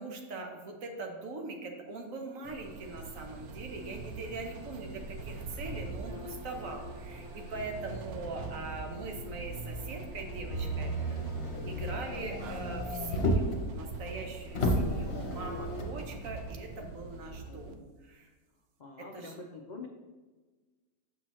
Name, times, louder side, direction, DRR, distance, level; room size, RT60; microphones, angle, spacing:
voice 1, 0.0-11.3 11.6-18.3 19.0-19.4, right 3 dB, 65° right, 2 dB, 1.3 m, -42 dB
sound 1, 2.4-17.7, right 3 dB, 85° right, 1.1 m, -43 dB
Bowed string instrument, 6.0-12.8, left 3 dB, 30° right, 1.0 m, -51 dB
Motor vehicle (road), 10.5-13.6 14.1-14.2 14.5-16.0 16.8-16.9, equal, 50° left, 1.2 m, -32 dB
voice 2, 17.5-17.8 18.8-19.9, left 3 dB, 90° left, 1 dB, 0.4 m, -45 dB
6.9 x 6.0 x 3.0 m, 1.3 s
omnidirectional pair, 1.5 m